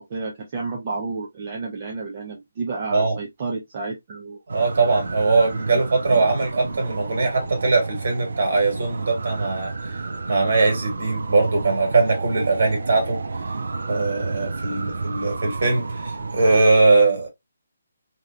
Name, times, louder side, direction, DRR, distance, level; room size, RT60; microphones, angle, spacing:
voice 1, 0.0-4.4 14.6-14.7, right 3 dB, 25° right, 0.4 m, -31 dB
voice 2, 4.5-13.2 13.9-17.3, right 3 dB, 45° right, 1.5 m, -21 dB
sound 1, 4.5-16.6, right 3 dB, 75° right, 0.6 m, -31 dB
3.2 x 2.7 x 2.4 m
hypercardioid pair, 180°, 0 cm